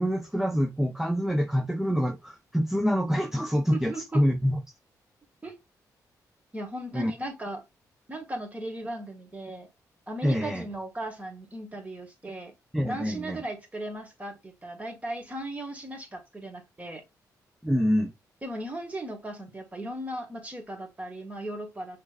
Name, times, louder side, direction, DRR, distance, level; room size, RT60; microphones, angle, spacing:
voice 1, 0.0-4.6 6.9-7.1 10.2-10.7 12.7-13.4 17.6-18.1, equal, 5° right, 0.7 m, -26 dB
voice 2, 3.7-4.2 5.4-5.6 6.5-7.6 8.1-9.7 10.1-12.5 12.8-17.0 18.4-22.0, right 1 dB, 20° right, 1.8 m, -37 dB
5.9 x 3.3 x 2.4 m
cardioid pair, 90°, 7 cm